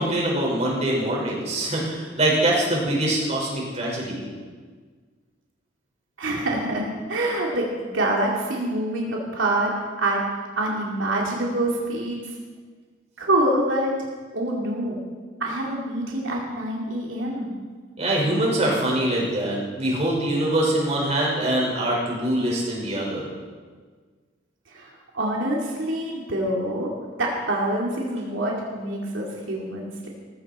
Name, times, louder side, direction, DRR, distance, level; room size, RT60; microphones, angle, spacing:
voice 1, 0.0-4.3 18.0-23.3, right 1 dB, 35° right, -3 dB, 5.1 m, -24 dB
voice 2, 6.2-9.7 10.0-10.3 10.6-12.3 13.2-13.9 14.3-15.0 15.4-17.5 24.7-26.9 27.2-30.1, right 1 dB, 90° right, -2 dB, 2.7 m, -26 dB
19.0 x 15.0 x 4.4 m, 1.5 s
head